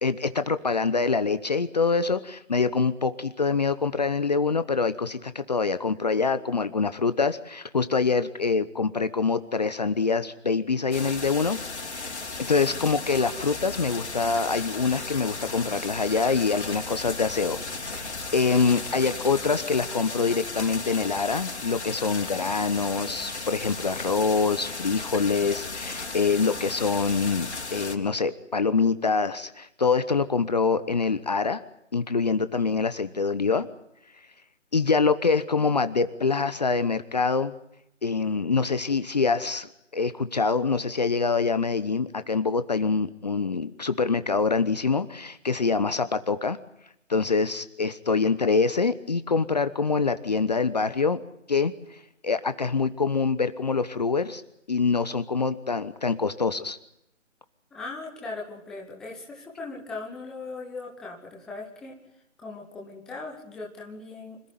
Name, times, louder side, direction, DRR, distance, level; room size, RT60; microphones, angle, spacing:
voice 1, 0.0-11.6 11.9-12.2 12.5-31.6 31.9-33.7 34.7-37.5 38.0-46.6 47.1-51.2 51.5-54.4 54.7-56.8, left 4 dB, 35° left, 12 dB, 1.0 m, -25 dB
sound 1, 10.9-28.0, left 3 dB, 60° left, 4.4 m, -35 dB
voice 2, 57.7-62.0 62.4-64.5, left 3 dB, ahead, -2 dB, 1.1 m, -39 dB
26.0 x 15.0 x 9.5 m, 0.80 s
figure-of-eight pair, 155°, 37 cm